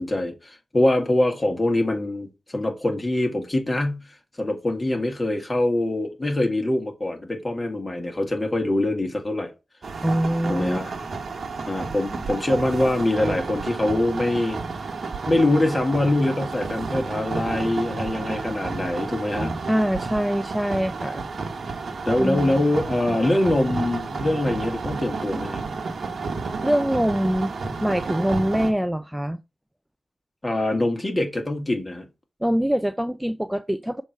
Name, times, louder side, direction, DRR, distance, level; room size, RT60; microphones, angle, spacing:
voice 1, 0.0-4.0 4.4-9.5 10.5-10.9 11.7-14.6 15.3-19.5 22.1-25.6 30.4-32.1, left 1 dB, 30° left, 2.1 m, -24 dB
sound 1, 9.8-28.7, right 4 dB, 70° right, 1.1 m, -31 dB
voice 2, 10.0-10.8 19.7-21.2 22.2-22.6 26.6-27.5 27.8-29.4 32.4-34.0, equal, 5° right, 0.4 m, -24 dB
6.9 x 3.1 x 5.4 m
cardioid pair, 40°, 0 cm